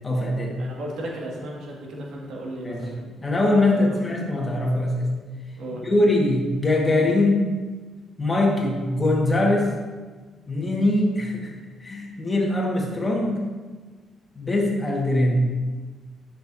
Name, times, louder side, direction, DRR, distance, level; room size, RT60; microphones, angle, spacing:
voice 1, 0.0-0.5 2.6-2.8 3.2-5.1 5.8-7.6 8.2-9.7 10.5-11.5 11.8-13.5 14.3-15.5, left 1 dB, 25° left, -1 dB, 1.6 m, -22 dB
voice 2, 0.6-3.1 3.7-4.0 5.5-5.9, right 1 dB, 80° right, -3 dB, 2.0 m, -35 dB
10.5 x 6.4 x 2.7 m, 1.3 s
cardioid pair, 90°, 0 cm